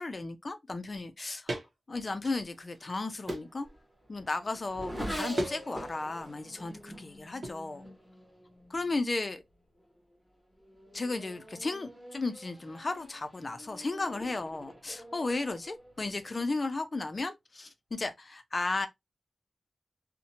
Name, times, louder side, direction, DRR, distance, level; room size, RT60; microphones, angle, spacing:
voice 1, 0.0-1.5 1.9-3.7 4.1-7.8 8.7-9.4 10.9-18.9, left 3 dB, 40° left, 0.4 m, -34 dB
sound 1, 1.5-1.7 2.1-2.8 3.3-3.6 5.4-5.6 5.9-6.3 7.4-7.6, right 1 dB, 55° right, 0.8 m, -36 dB
Race car auto racing / Accelerating revving vroom, 3.1-9.0 9.8-10.2 10.6-16.5, equal, ahead, 1.2 m, -45 dB
2.7 x 2.1 x 2.7 m
wide cardioid pair, 110°, 0 cm